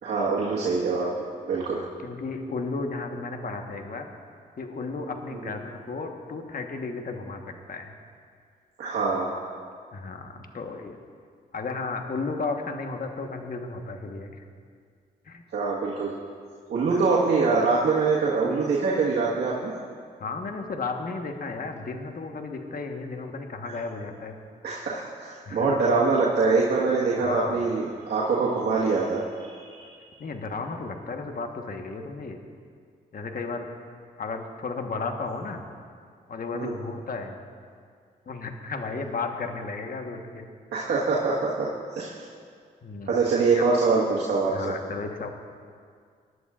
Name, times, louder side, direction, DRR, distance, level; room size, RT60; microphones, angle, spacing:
voice 1, 0.0-1.8 8.8-9.4 15.5-16.1 16.7-19.7 24.6-29.9 36.5-36.7 40.7-42.2 43.1-44.7, right 4 dB, 70° right, -6 dB, 1.6 m, -24 dB
voice 2, 1.5-4.1 4.6-7.9 9.9-11.0 11.5-14.4 15.2-15.4 16.9-17.0 20.2-24.4 25.5-25.7 27.2-27.7 30.2-32.4 33.1-33.7 34.2-35.7 36.3-37.4 38.3-40.5 42.8-43.1 43.5-43.7 44.5-45.3, left 3 dB, 55° left, 4 dB, 1.3 m, -34 dB
20.0 x 11.0 x 2.5 m, 2.1 s
supercardioid pair, 45°, 18 cm